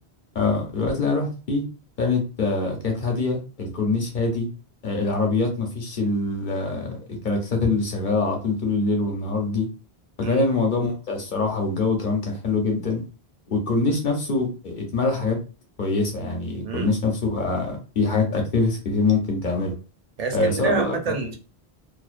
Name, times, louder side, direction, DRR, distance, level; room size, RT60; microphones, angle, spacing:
voice 1, 0.3-1.6 2.0-4.5 4.8-6.9 7.2-9.7 10.2-13.0 13.5-15.4 15.8-19.7 20.3-21.0, left 3 dB, 55° left, 2 dB, 0.8 m, -24 dB
voice 2, 20.2-21.4, right 5 dB, 50° right, 4 dB, 0.5 m, -28 dB
2.5 x 2.1 x 2.4 m, 0.34 s
omnidirectional pair, 1.1 m